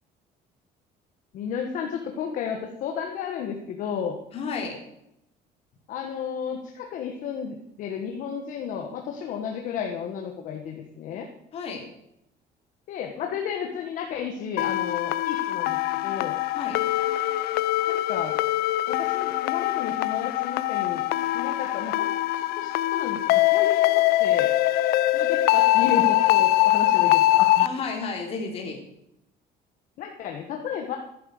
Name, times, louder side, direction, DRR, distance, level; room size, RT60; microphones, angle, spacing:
voice 1, 1.3-4.2 5.9-11.3 12.9-16.4 17.9-18.4 18.9-21.0 21.3-22.1 22.6-24.5 25.1-27.7 30.0-31.0, left 7 dB, 50° left, 2 dB, 1.6 m, -33 dB
voice 2, 4.3-4.8 11.5-11.8 16.5-16.8 27.6-28.8, left 4 dB, 35° left, 1 dB, 3.4 m, -32 dB
sound 1, 14.6-27.7, left 15 dB, 70° left, 0.6 m, -23 dB
14.0 x 10.5 x 6.6 m, 0.80 s
cardioid pair, 180°, 17 cm